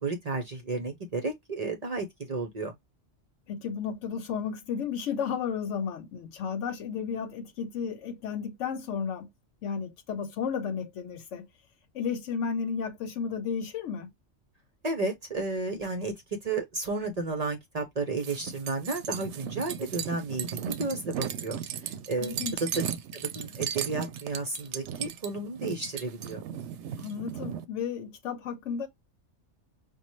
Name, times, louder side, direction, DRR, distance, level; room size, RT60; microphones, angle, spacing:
voice 1, 0.0-2.7 14.8-16.1 16.4-22.4 22.8-22.9 23.1-26.4, right 3 dB, 45° right, 0.6 m, -32 dB
voice 2, 3.5-9.3 9.6-11.5 11.9-14.1 22.2-22.6 27.0-28.9, left 6 dB, 80° left, 1.0 m, -33 dB
sound 1, 18.2-27.7, right 9 dB, 70° right, 0.8 m, -36 dB
5.3 x 2.2 x 3.0 m
omnidirectional pair, 1.3 m